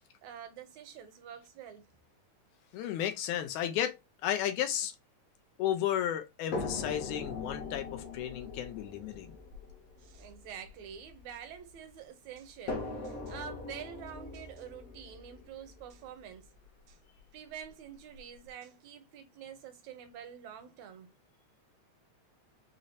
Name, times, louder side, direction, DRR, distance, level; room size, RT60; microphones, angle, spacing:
voice 1, 0.2-1.8 10.0-16.5 16.9-17.0 17.3-21.1, right 8 dB, 80° right, 1.9 m, -47 dB
voice 2, 2.7-4.9 5.6-9.3, left 11 dB, 85° left, 2.0 m, -33 dB
sound 1, 6.5-11.7 12.7-16.6 17.6-17.7 18.1-18.2, left 3 dB, 65° left, 1.8 m, -41 dB
5.6 x 2.1 x 2.5 m
omnidirectional pair, 3.4 m